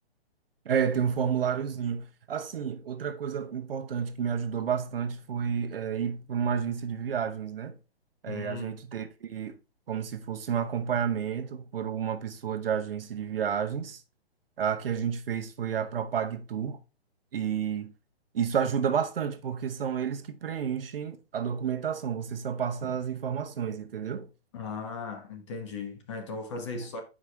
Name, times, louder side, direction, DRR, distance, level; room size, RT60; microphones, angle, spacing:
voice 1, 0.6-7.8 8.2-9.6 9.9-14.0 14.6-16.8 17.3-17.9 18.3-24.3 26.7-26.9, right 7 dB, 60° right, 0.9 m, -30 dB
voice 2, 8.3-8.7 24.5-27.0, left 4 dB, 30° left, 1.1 m, -37 dB
7.9 x 4.9 x 3.4 m
hypercardioid pair, 170°, 32 cm